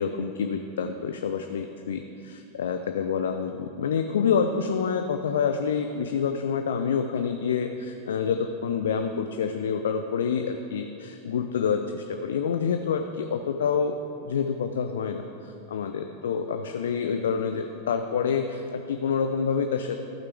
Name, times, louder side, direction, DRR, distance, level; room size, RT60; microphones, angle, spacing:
voice 1, 0.0-14.0 14.2-20.0, left 6 dB, 65° left, 6 dB, 0.4 m, -27 dB
14.0 x 5.9 x 3.4 m, 2.8 s
figure-of-eight pair, 90°, 0 cm